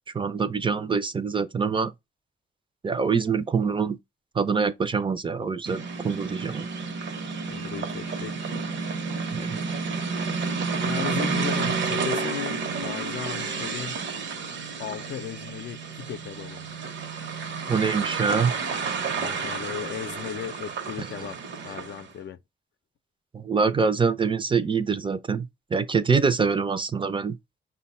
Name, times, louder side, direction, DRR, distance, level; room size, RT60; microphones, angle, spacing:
voice 1, 0.1-1.9 2.8-4.0 4.3-6.7 9.3-9.6 17.7-18.5 23.3-27.4, right 5 dB, 25° right, 0.5 m, -25 dB
sound 1, 5.7-22.1, right 4 dB, 70° right, 0.8 m, -31 dB
voice 2, 7.5-8.4 10.8-14.0 14.8-16.7 19.2-21.4 21.6-22.4, left 8 dB, 65° left, 0.5 m, -36 dB
5.5 x 2.2 x 4.1 m
cardioid pair, 110°, 20 cm